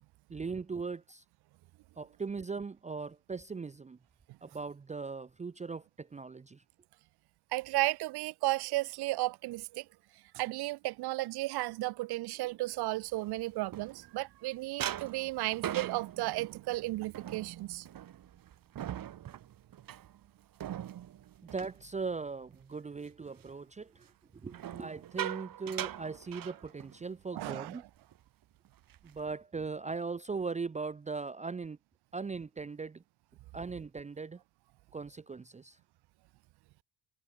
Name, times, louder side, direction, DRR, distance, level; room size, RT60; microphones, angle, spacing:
voice 1, 0.3-1.2 2.0-4.0 4.4-6.6 21.5-24.1 24.4-27.8 29.0-31.8 32.1-33.0 33.5-34.4 34.9-35.8, right 4 dB, 20° right, 0.8 m, -39 dB
voice 2, 7.5-9.8 10.3-17.9 27.3-27.8, right 19 dB, 75° right, 0.6 m, -34 dB
sound 1, 12.9-14.4 14.8-22.6 23.0-23.3 24.5-27.1 27.4-27.6 27.9-28.2 28.7-29.3, right 11 dB, 60° right, 4.3 m, -42 dB
cardioid pair, 135°, 39 cm